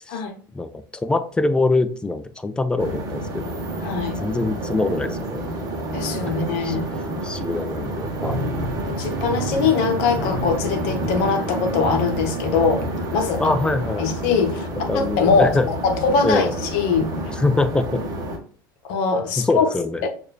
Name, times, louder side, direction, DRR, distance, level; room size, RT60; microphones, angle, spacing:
voice 1, 0.5-3.6 4.2-5.5 6.2-6.3 6.6-8.4 13.4-14.1 14.9-15.7 16.2-16.5 17.4-18.2 19.4-20.1, left 2 dB, 10° left, 0.4 m, -24 dB
sound 1, 2.8-18.4, right 1 dB, 30° right, 1.1 m, -28 dB
voice 2, 3.8-4.2 5.9-6.9 8.6-12.8 13.1-13.4 14.0-14.7 14.9-17.1 18.9-19.7 20.0-20.1, left 5 dB, 55° left, 0.8 m, -22 dB
6.4 x 2.6 x 2.3 m
figure-of-eight pair, 75°, 12 cm